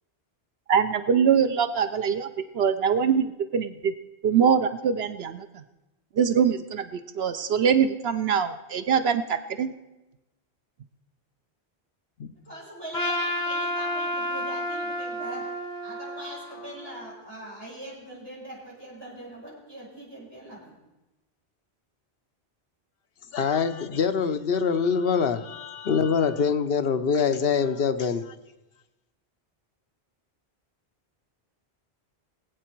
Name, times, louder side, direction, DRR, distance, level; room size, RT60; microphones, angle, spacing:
voice 1, 0.7-2.3 2.5-3.2 3.5-3.9 4.2-5.5 6.2-9.7, right 7 dB, 70° right, 10 dB, 0.9 m, -23 dB
voice 2, 12.4-15.5 15.8-20.8, right 1 dB, 25° right, -6 dB, 5.4 m, -41 dB
Trumpet, 12.9-17.2, equal, 85° left, 2.2 m, -31 dB
voice 3, 23.3-28.3, left 6 dB, 65° left, 8 dB, 1.0 m, -24 dB
21.0 x 8.3 x 4.5 m, 1.0 s
omnidirectional pair, 1.1 m